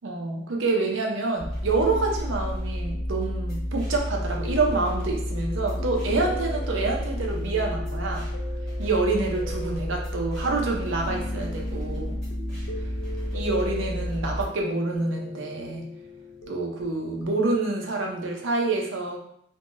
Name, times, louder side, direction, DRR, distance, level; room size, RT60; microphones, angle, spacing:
voice 1, 0.0-8.3 8.8-12.2 13.3-15.9 16.5-19.2, right 3 dB, 75° right, 1 dB, 0.6 m, -27 dB
sound 1, 1.4-14.5, equal, 5° left, 1.0 m, -31 dB
sound 2, 1.7-17.3, left 2 dB, 90° left, 0.5 m, -41 dB
3.4 x 2.2 x 2.5 m, 0.70 s
head